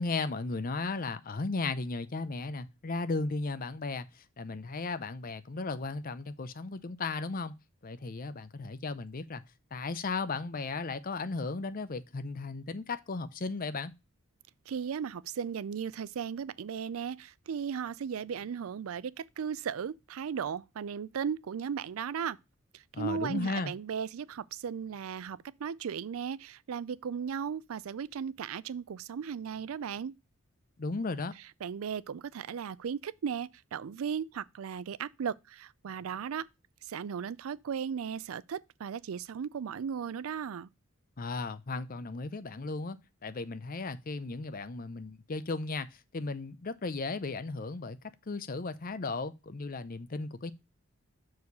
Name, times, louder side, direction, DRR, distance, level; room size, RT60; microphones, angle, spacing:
voice 1, 0.0-7.5 7.8-9.4 9.7-13.9 22.9-23.7 30.8-31.3 41.2-43.0 43.2-45.9 46.1-48.0 48.3-50.5, left 3 dB, 40° left, 0.6 m, -35 dB
voice 2, 14.7-22.4 23.0-30.1 31.6-36.4 36.9-40.7, right 7 dB, 80° right, 0.4 m, -36 dB
6.5 x 4.7 x 5.2 m
head